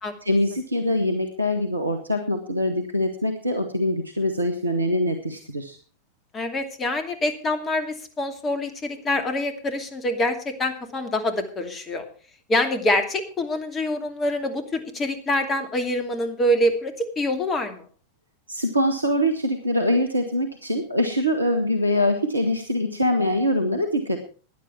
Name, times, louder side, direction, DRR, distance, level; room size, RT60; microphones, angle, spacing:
voice 1, 0.2-5.8 18.5-24.2, left 1 dB, 85° right, 6 dB, 1.5 m, -23 dB
voice 2, 6.3-12.0 12.5-17.8, left 1 dB, 20° left, 7 dB, 2.6 m, -25 dB
16.5 x 10.5 x 4.6 m, 0.39 s
figure-of-eight pair, 90°, 0 cm